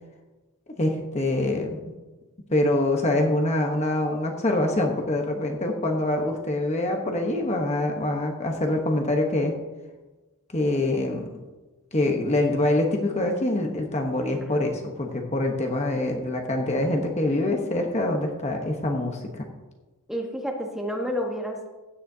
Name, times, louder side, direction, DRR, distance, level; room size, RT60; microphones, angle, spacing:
voice 1, 0.8-1.8 2.5-9.6 10.5-11.3 11.9-19.4, left 1 dB, 30° left, 2 dB, 1.0 m, -25 dB
voice 2, 20.1-21.7, equal, ahead, 1 dB, 1.2 m, -30 dB
15.5 x 9.9 x 2.8 m, 1.2 s
head